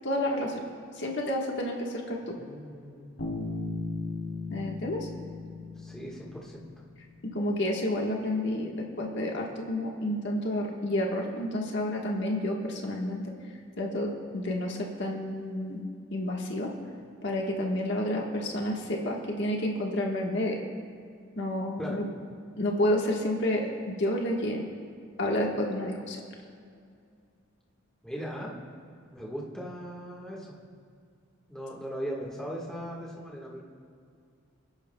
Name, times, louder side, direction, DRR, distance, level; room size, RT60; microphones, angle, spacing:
voice 1, 0.0-0.6 0.9-2.3 4.5-5.1 7.2-8.7 9.0-13.2 13.8-15.8 16.1-16.7 17.2-20.6 21.4-22.0 22.6-24.6 25.2-26.2, left 1 dB, 50° left, -1 dB, 1.3 m, -30 dB
voice 2, 2.3-3.2 5.8-6.6 21.8-22.0 28.0-28.6 29.1-30.5 31.5-33.6, equal, 5° left, -4 dB, 1.5 m, -38 dB
Bass guitar, 3.2-7.0, left 3 dB, 65° left, 2.6 m, -37 dB
29.0 x 11.0 x 2.2 m, 2.3 s
head